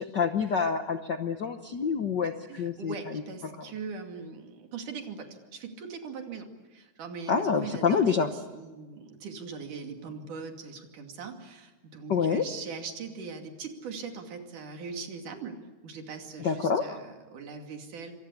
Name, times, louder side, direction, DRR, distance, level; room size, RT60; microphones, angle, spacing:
voice 1, 0.0-2.9 7.3-8.3 12.1-12.5 16.4-17.0, left 6 dB, 65° left, 7 dB, 1.0 m, -27 dB
voice 2, 2.5-8.2 8.5-15.6 15.8-18.1, right 5 dB, 85° right, 4 dB, 4.1 m, -40 dB
27.5 x 25.5 x 8.4 m, 1.2 s
omnidirectional pair, 3.5 m